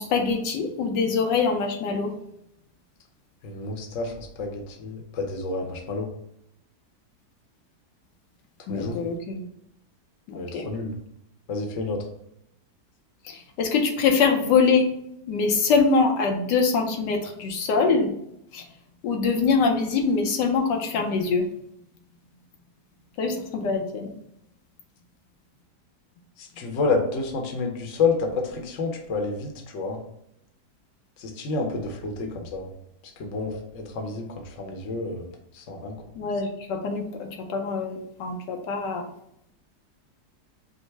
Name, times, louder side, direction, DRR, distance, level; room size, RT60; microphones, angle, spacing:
voice 1, 0.0-2.1 8.7-9.5 10.3-10.7 13.2-14.9 15.3-18.1 18.5-18.6 19.0-21.5 23.2-24.1 36.1-39.1, left 4 dB, 85° left, 3 dB, 1.4 m, -24 dB
voice 2, 3.4-6.1 8.7-9.0 10.3-10.9 11.5-12.0 26.4-30.0 31.2-32.7 33.2-35.3 35.5-36.0, left 3 dB, 55° left, 2 dB, 1.1 m, -29 dB
5.3 x 2.1 x 4.6 m, 0.76 s
omnidirectional pair, 1.8 m